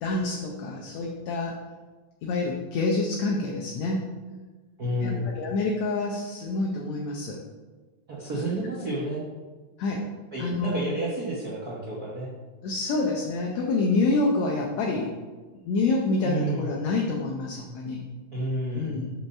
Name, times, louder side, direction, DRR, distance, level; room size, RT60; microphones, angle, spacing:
voice 1, 0.0-1.5 2.2-4.1 5.0-7.4 9.8-10.1 10.4-10.9 12.6-15.1 15.7-18.0 18.7-19.1, left 3 dB, 70° left, -1 dB, 2.0 m, -27 dB
voice 2, 4.8-5.2 8.1-9.2 10.3-12.3 16.2-16.7 18.3-19.0, right 1 dB, 65° right, -5 dB, 0.9 m, -30 dB
5.9 x 5.6 x 6.3 m, 1.3 s
omnidirectional pair, 3.6 m